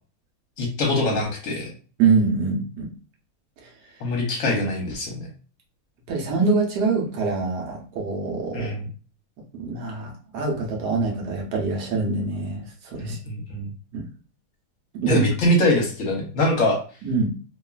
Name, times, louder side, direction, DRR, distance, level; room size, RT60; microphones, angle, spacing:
voice 1, 0.6-1.7 4.0-5.3 8.5-8.9 13.0-13.7 15.1-16.8, left 1 dB, 60° left, 0 dB, 1.0 m, -23 dB
voice 2, 2.0-2.9 6.1-8.7 9.5-12.6 12.9-13.2 13.9-14.0 14.9-15.2 17.0-17.3, right 4 dB, 80° right, 0 dB, 1.4 m, -24 dB
3.0 x 2.3 x 2.3 m, 0.38 s
omnidirectional pair, 1.8 m